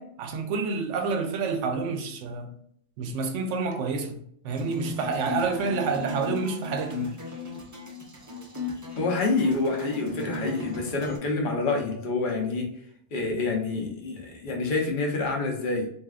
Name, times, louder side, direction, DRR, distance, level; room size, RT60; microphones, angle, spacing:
voice 1, 0.0-2.5 3.0-4.2 4.4-7.1, right 4 dB, 85° right, 0.9 m, -28 dB
sound 1, 4.5-11.2, left 3 dB, 25° right, 0.3 m, -36 dB
voice 2, 9.0-12.7 13.1-15.9, left 3 dB, 50° left, 0.8 m, -27 dB
3.4 x 2.5 x 2.3 m
omnidirectional pair, 1.2 m